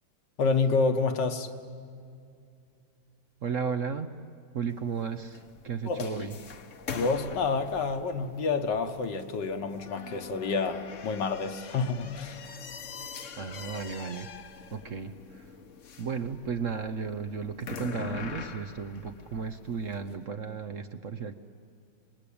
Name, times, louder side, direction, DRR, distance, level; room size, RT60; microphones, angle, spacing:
voice 1, 0.4-1.5 5.8-6.3 6.9-12.5, left 4 dB, 70° left, 6 dB, 1.9 m, -28 dB
voice 2, 3.4-4.1 4.5-6.3 13.4-14.3 14.7-15.4 16.0-21.3, right 6 dB, 55° right, 8 dB, 1.0 m, -34 dB
sound 1, 4.7-20.1, left 6 dB, 50° left, 1.2 m, -44 dB
26.5 x 21.0 x 8.6 m, 2.4 s
omnidirectional pair, 2.0 m